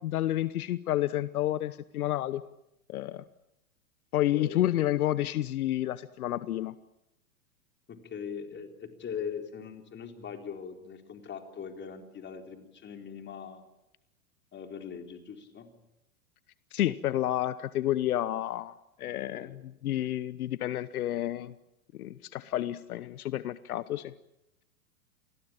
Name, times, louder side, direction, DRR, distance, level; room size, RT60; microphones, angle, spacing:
voice 1, 0.0-2.4 2.9-3.2 4.1-6.7 16.7-21.5 22.0-24.1, left 13 dB, 75° left, 16 dB, 1.0 m, -30 dB
voice 2, 7.9-13.6 14.5-15.7 19.0-19.6, left 7 dB, 25° left, 5 dB, 4.1 m, -41 dB
28.5 x 20.5 x 8.8 m, 0.88 s
hypercardioid pair, 110°, 45 cm